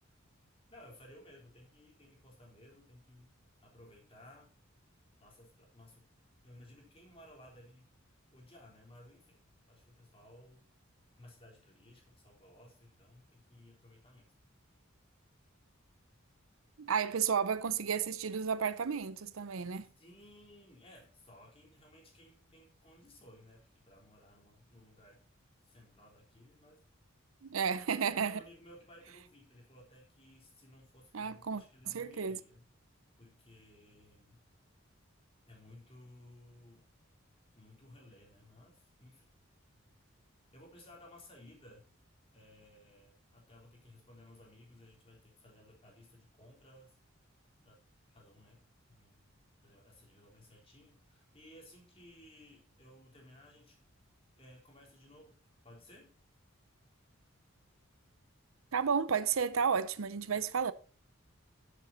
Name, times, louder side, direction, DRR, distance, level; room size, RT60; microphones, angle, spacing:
voice 1, 0.7-3.3 3.6-4.5 5.2-6.1 6.4-7.9 8.3-10.7 11.1-14.3 20.0-25.2 25.6-26.8 28.1-32.7 33.2-34.5 35.4-36.9 37.6-39.3 40.5-41.9 42.3-47.0 47.6-47.8 48.1-53.8 54.3-55.4 55.6-56.1, left 1 dB, 30° left, 3.9 m, -58 dB
voice 2, 16.8-19.9 27.4-28.4 31.1-32.4 58.7-60.7, right 6 dB, 80° right, 0.6 m, -32 dB
11.0 x 7.7 x 4.3 m
head